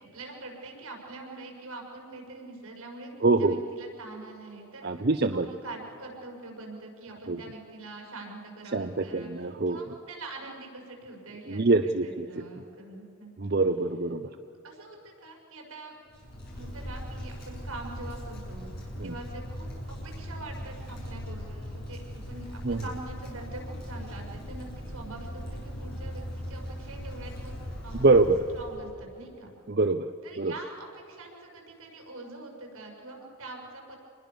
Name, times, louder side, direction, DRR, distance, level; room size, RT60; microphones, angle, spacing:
voice 1, 0.1-5.1 5.4-13.3 14.2-14.4 14.6-15.9 16.5-19.7 20.0-27.6 27.8-28.2 28.5-29.5 30.2-34.0, right 2 dB, 75° right, 1 dB, 6.1 m, -44 dB
voice 2, 3.2-3.6 4.8-5.5 7.3-7.4 8.7-9.8 11.5-12.3 13.4-14.3 19.0-19.1 22.6-22.8 27.9-28.4 29.7-30.1 30.4-30.5, right 3 dB, 45° right, 8 dB, 0.7 m, -24 dB
Wind, 16.1-28.9, equal, 45° left, 7.1 m, -39 dB
26.5 x 21.0 x 7.0 m, 2.6 s
head